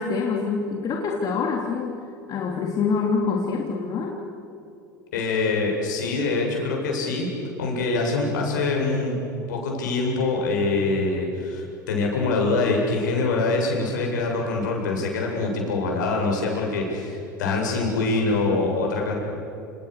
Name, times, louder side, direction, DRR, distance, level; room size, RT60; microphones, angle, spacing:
voice 1, 0.0-2.0 2.3-4.2, left 5 dB, 40° left, 0 dB, 3.5 m, -25 dB
voice 2, 5.1-7.3 7.6-9.2 9.5-19.1, left 3 dB, 70° left, 0 dB, 7.9 m, -24 dB
29.5 x 29.0 x 6.8 m, 2.8 s
figure-of-eight pair, 80°, 10 cm